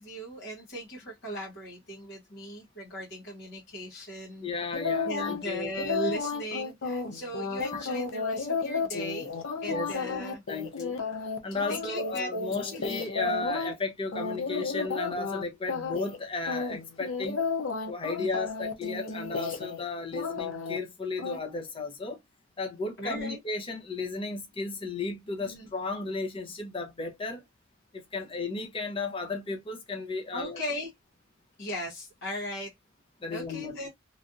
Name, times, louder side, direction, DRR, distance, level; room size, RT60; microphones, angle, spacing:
voice 1, 0.0-4.5 5.0-9.3 9.6-10.4 11.7-12.3 12.7-13.0 18.2-18.4 23.0-23.4 25.4-25.7 30.3-30.9 31.6-32.7 33.3-33.9, equal, 60° left, 1.1 m, -38 dB
voice 2, 4.4-5.7 9.7-10.2 10.5-11.0 11.4-17.4 17.9-22.2 22.6-27.4 27.9-30.6 33.2-33.8, left 3 dB, 25° left, 0.8 m, -34 dB
sound 1, 4.7-5.4 5.8-13.7 14.1-15.4 15.7-16.2 16.5-19.8 20.1-20.8 21.2-21.4, left 4 dB, 90° left, 0.7 m, -32 dB
3.2 x 2.5 x 2.6 m
head